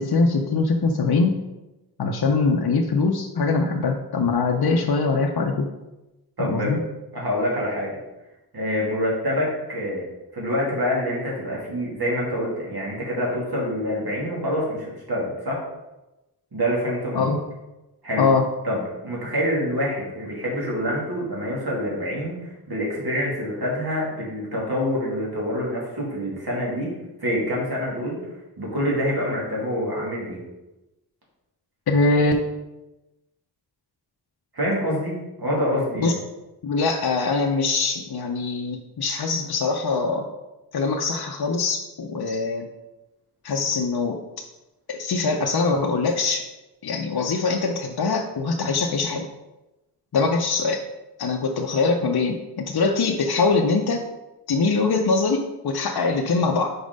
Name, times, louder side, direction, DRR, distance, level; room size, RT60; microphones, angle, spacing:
voice 1, 0.0-1.4 2.0-5.7 6.4-6.8 17.2-17.4 18.2-18.5 31.9-32.3 36.0-36.1 36.6-40.3 40.7-42.7 43.4-44.2 44.9-46.4 46.8-49.3 50.1-50.8 51.2-54.0 54.5-56.7, left 4 dB, 65° left, 2 dB, 0.6 m, -22 dB
voice 2, 6.4-6.8 7.1-8.0 8.5-10.0 10.3-15.6 16.5-17.3 18.0-18.3 18.6-26.9 27.2-28.2 28.6-30.4 34.5-36.1, equal, 60° right, -4 dB, 2.3 m, -26 dB
5.2 x 4.4 x 5.2 m, 1.0 s
wide cardioid pair, 85°, 41 cm